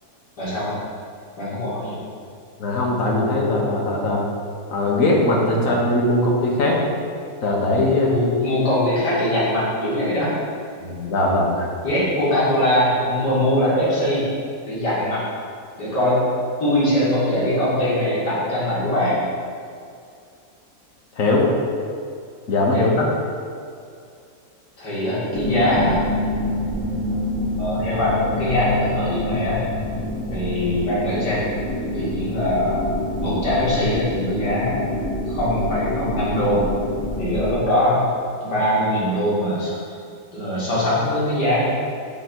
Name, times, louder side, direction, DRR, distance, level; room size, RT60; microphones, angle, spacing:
voice 1, 0.4-0.7 1.4-2.0 5.6-5.7 8.0-10.3 11.8-14.2 14.7-15.2 15.8-16.2 16.6-19.2 22.7-22.8 24.8-26.1 27.6-29.7 30.3-31.4 31.9-32.8 33.2-34.8 35.3-36.6 37.2-38.1 38.4-39.8 40.3-41.7, left 1 dB, 80° left, -9 dB, 2.7 m, -22 dB
voice 2, 2.6-4.3 4.7-6.8 7.4-8.1 10.8-11.7 21.1-21.5 22.5-23.1, left 2 dB, 55° left, -2 dB, 1.5 m, -20 dB
sound 1, 25.3-37.5, left 1 dB, 10° left, 0.5 m, -27 dB
6.6 x 4.0 x 6.2 m, 2.4 s
omnidirectional pair, 1.8 m